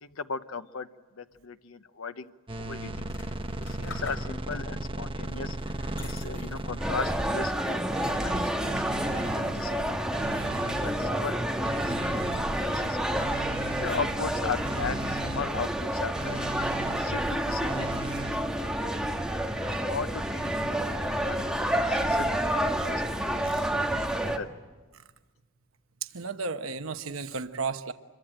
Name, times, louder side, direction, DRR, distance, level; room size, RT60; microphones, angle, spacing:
voice 1, 0.0-0.9 1.2-2.3 2.6-3.1 3.6-5.6 6.0-7.8 8.1-10.0 10.6-11.9 12.6-13.0 13.7-16.4 16.9-18.4 18.6-19.4 19.9-23.0 23.3-24.5, left 5 dB, 90° left, 10 dB, 0.9 m, -37 dB
sound 1, 2.5-7.6 7.9-9.7 10.1-11.2 11.6-12.8 13.1-14.3 14.6-15.8 16.1-17.2 17.7-18.3, right 2 dB, 25° right, 1.4 m, -37 dB
sound 2, 2.9-4.6 5.2-7.0 7.4-8.0, left 3 dB, 65° left, 6.6 m, -48 dB
voice 2, 3.6-4.1 23.4-23.9 26.0-27.9, right 4 dB, 85° right, 8 dB, 1.0 m, -35 dB
sound 3, 6.8-24.4, right 1 dB, 5° right, 1.6 m, -29 dB
27.0 x 23.0 x 8.9 m, 1.3 s
head